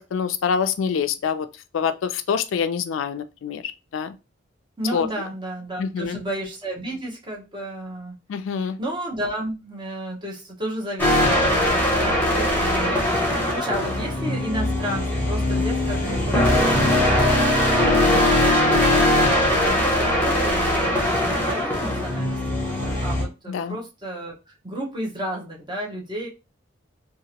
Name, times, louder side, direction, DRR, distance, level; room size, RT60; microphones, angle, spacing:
voice 1, 0.0-1.5 1.7-4.1 4.9-5.1 5.8-6.2 8.3-8.8 18.2-18.3 23.5-23.8, left 6 dB, 80° left, 0.3 m, -26 dB
voice 2, 4.8-8.2 8.8-11.2 11.4-22.4 22.7-26.3, right 1 dB, 25° right, 0.9 m, -32 dB
sound 1, 11.0-23.2, left 1 dB, 10° left, 0.9 m, -21 dB
2.8 x 2.4 x 2.8 m
head